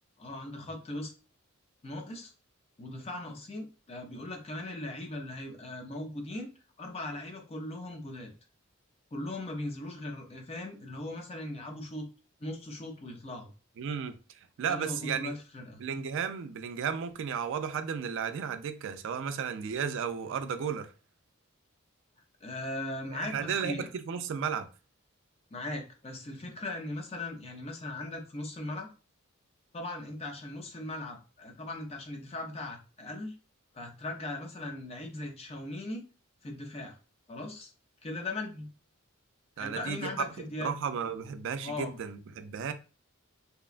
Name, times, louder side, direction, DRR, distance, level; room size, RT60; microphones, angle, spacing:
voice 1, 0.2-1.1 1.8-2.3 2.8-6.5 6.8-8.3 9.1-12.1 12.4-13.5 14.7-15.8 22.4-23.9 25.5-28.9 29.7-33.3 33.7-36.0 36.4-37.0 37.3-37.7 38.0-38.7 39.6-40.7 41.6-41.9, left 2 dB, 30° left, 0.5 m, -39 dB
voice 2, 13.8-14.2 14.6-15.3 15.8-20.9 23.1-24.7 39.6-40.3 40.6-42.7, right 7 dB, 60° right, 0.3 m, -34 dB
2.8 x 2.2 x 2.4 m
head